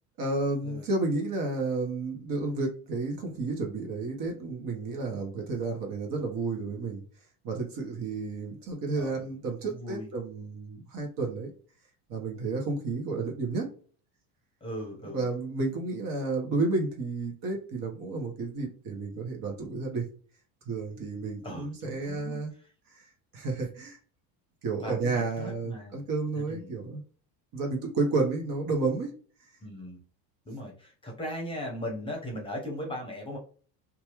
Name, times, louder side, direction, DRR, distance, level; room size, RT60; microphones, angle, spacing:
voice 1, 0.2-7.0 7.4-11.5 12.1-13.7 15.0-20.1 20.7-22.5 22.9-23.0 23.3-24.0 24.6-27.0 27.5-29.1, right 3 dB, 45° right, 1 dB, 1.1 m, -31 dB
voice 2, 8.9-10.1 14.6-15.4 21.4-22.4 24.8-26.1 26.5-26.8 29.6-30.0 30.5-33.4, equal, 10° left, 0 dB, 0.9 m, -38 dB
2.9 x 2.3 x 3.0 m, 0.41 s
supercardioid pair, 110°, 46 cm